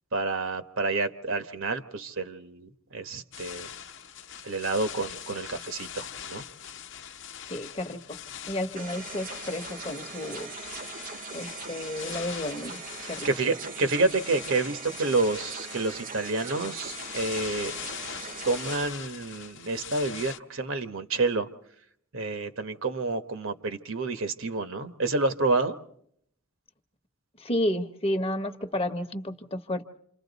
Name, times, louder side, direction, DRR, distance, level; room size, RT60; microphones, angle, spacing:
voice 1, 0.1-3.7 4.4-6.4 13.0-17.7 18.4-21.5 22.1-25.8, right 3 dB, 65° right, 10 dB, 1.2 m, -29 dB
sound 1, 3.3-20.4, left 9 dB, 55° left, 0.9 m, -42 dB
voice 2, 7.5-8.2 8.5-10.5 11.3-13.3 27.4-29.8, left 1 dB, 25° left, 6 dB, 1.0 m, -31 dB
sound 2, 8.7-18.7, right 5 dB, 40° right, 0.8 m, -41 dB
29.5 x 27.5 x 4.1 m, 0.69 s
head